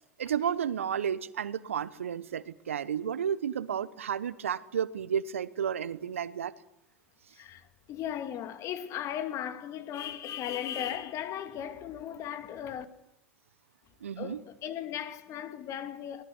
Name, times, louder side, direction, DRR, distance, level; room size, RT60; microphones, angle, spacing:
voice 1, 0.2-6.5 14.0-14.4, right 8 dB, 80° right, 0.9 m, -32 dB
voice 2, 7.3-12.9 14.2-16.2, left 10 dB, 45° left, 2.4 m, -37 dB
24.0 x 19.5 x 7.9 m
figure-of-eight pair, 80°, 7 cm